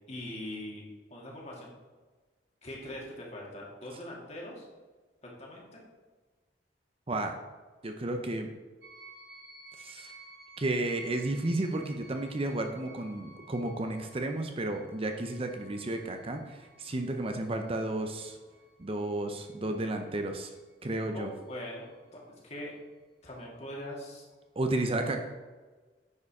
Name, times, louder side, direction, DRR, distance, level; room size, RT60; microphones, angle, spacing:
voice 1, 0.1-0.8 1.1-1.7 2.6-4.6 5.2-5.8 21.1-22.7 23.2-24.2, left 1 dB, 40° left, -3 dB, 2.4 m, -42 dB
voice 2, 7.8-8.5 9.8-10.1 10.6-18.4 18.8-20.5 20.8-21.3 24.6-25.2, right 2 dB, 35° right, 5 dB, 0.6 m, -32 dB
sound 1, 8.8-20.8 21.3-22.1, right 2 dB, 65° right, 1.5 m, -55 dB
9.5 x 5.0 x 4.8 m, 1.3 s
head